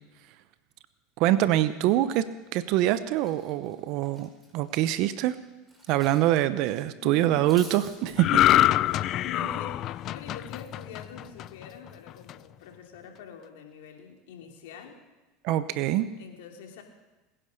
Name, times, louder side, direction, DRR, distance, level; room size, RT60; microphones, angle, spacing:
voice 1, 1.2-5.4 5.9-8.3 15.4-16.1, right 13 dB, 60° right, 14 dB, 0.8 m, -24 dB
Cutlery silverware, 3.2-6.3 6.6-6.7 7.2-8.2, right 1 dB, 10° right, 5.0 m, -50 dB
voice 2, 7.0-7.5 7.9-8.0 8.3-8.4 9.2-15.0 16.2-16.8, left 5 dB, 80° left, 2 dB, 2.9 m, -45 dB
sound 1, 8.2-11.7 12.1-12.3, left 13 dB, 50° left, 0.4 m, -24 dB
20.5 x 10.5 x 6.6 m, 1.1 s
hypercardioid pair, 100°, 0 cm